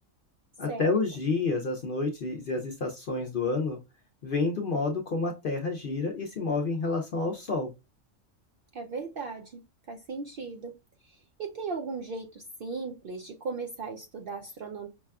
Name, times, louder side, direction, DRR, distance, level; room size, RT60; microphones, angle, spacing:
voice 1, 0.6-3.8 4.2-7.7, left 3 dB, 55° left, 0.6 m, -29 dB
voice 2, 8.7-9.6 9.9-10.7 11.0-14.9, right 4 dB, 65° right, 0.5 m, -37 dB
5.9 x 2.3 x 2.3 m
omnidirectional pair, 1.4 m